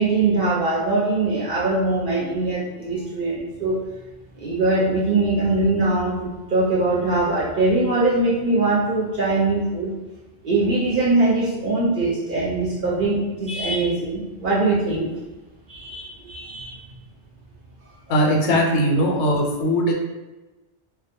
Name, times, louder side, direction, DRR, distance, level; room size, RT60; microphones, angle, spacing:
voice 1, 0.0-3.8 4.4-9.9 10.4-15.2 15.7-16.8, right 2 dB, 55° right, -6 dB, 0.7 m, -22 dB
voice 2, 18.1-19.9, equal, 80° left, 0 dB, 0.9 m, -19 dB
2.2 x 2.1 x 2.9 m, 1.1 s
omnidirectional pair, 1.2 m